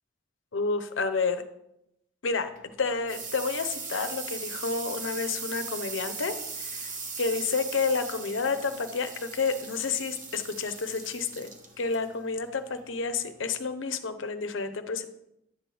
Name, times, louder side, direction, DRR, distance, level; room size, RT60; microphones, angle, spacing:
voice 1, 0.5-1.4 2.2-15.1, left 4 dB, 90° left, 9 dB, 0.8 m, -30 dB
sound 1, 2.4-13.6, right 4 dB, 45° right, 1.2 m, -39 dB
10.5 x 7.7 x 3.4 m, 0.81 s
head